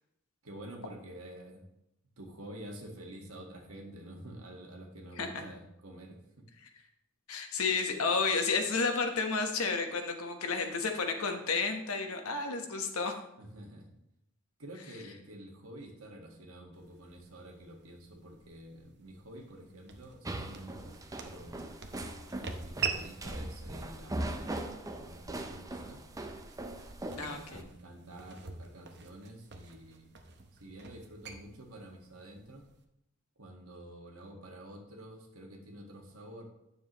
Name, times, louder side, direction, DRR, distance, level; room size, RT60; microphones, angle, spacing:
voice 1, 0.4-1.7 2.2-6.5 13.4-13.9 14.6-21.6 22.3-24.6 25.0-26.0 27.1-30.1 30.6-32.6 33.4-36.5, right 1 dB, 80° right, 2 dB, 1.6 m, -49 dB
voice 2, 7.3-13.1 27.2-27.6, left 4 dB, 85° left, 5 dB, 1.1 m, -31 dB
sound 1, 16.7-32.8, right 6 dB, 55° right, 0.8 m, -45 dB
sound 2, 20.3-27.6, right 1 dB, 15° right, 0.6 m, -40 dB
9.4 x 7.0 x 3.0 m, 0.83 s
head